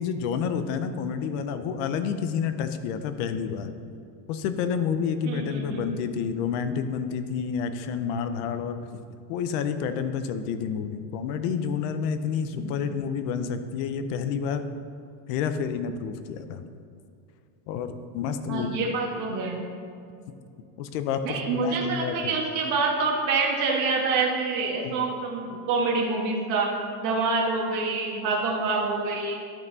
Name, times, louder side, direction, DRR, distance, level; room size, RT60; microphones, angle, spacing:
voice 1, 0.0-3.7 4.3-9.0 9.3-14.6 15.3-16.6 17.7-18.7 20.8-22.3 24.8-25.1, left 7 dB, 55° left, 10 dB, 0.7 m, -29 dB
voice 2, 5.2-5.8 12.6-12.8 18.5-19.6 21.2-26.7 27.0-29.4, right 3 dB, 45° right, -2 dB, 1.6 m, -26 dB
12.0 x 5.5 x 4.0 m, 2.5 s
cardioid pair, 165°, 43 cm